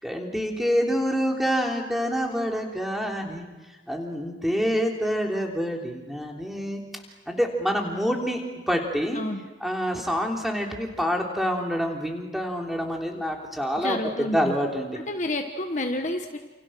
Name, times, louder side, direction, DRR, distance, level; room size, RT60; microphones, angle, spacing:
voice 1, 0.0-3.5 3.9-6.8 7.3-9.2 9.6-15.0, equal, ahead, 1 dB, 3.3 m, -27 dB
voice 2, 13.8-14.6 15.1-16.4, left 1 dB, 40° left, 4 dB, 1.4 m, -29 dB
29.5 x 28.5 x 6.3 m, 1.1 s
head